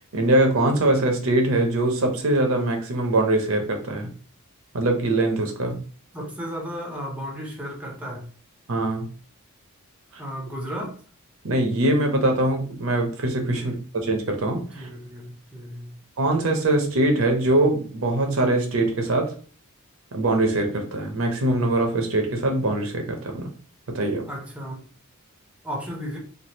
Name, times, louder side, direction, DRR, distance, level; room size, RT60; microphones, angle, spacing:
voice 1, 0.1-4.1 4.7-5.8 8.7-9.1 10.1-10.2 11.4-13.7 14.0-14.9 16.2-19.3 20.1-23.5 23.9-24.3, right 2 dB, 65° right, 3 dB, 0.7 m, -22 dB
voice 2, 6.1-8.2 10.2-11.0 13.6-13.7 14.7-15.9 24.3-24.8 25.6-26.2, equal, 5° right, 0 dB, 0.6 m, -34 dB
3.3 x 2.3 x 2.8 m, 0.40 s
head